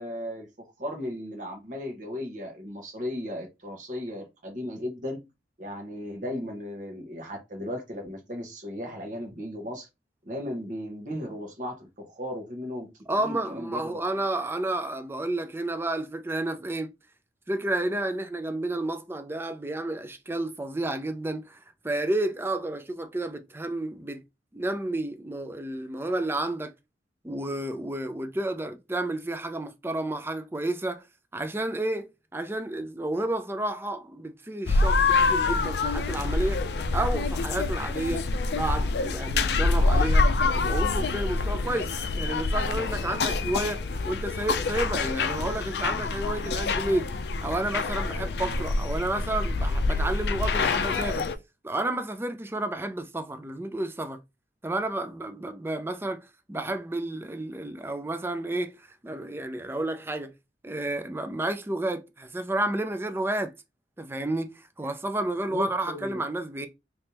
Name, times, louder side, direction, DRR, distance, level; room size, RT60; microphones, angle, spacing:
voice 1, 0.0-5.3 5.6-9.9 10.2-12.9 13.2-14.0 65.5-66.2, left 1 dB, 45° right, 1.4 m, -36 dB
voice 2, 13.1-16.9 17.5-24.2 24.5-26.7 27.2-31.0 31.3-36.7 36.9-38.3 38.5-47.1 47.4-51.2 51.6-54.2 54.6-60.3 60.6-63.5 64.0-66.7, right 1 dB, 15° right, 0.5 m, -31 dB
sound 1, 34.7-51.4, left 3 dB, 65° left, 0.4 m, -26 dB
3.5 x 3.1 x 2.8 m
head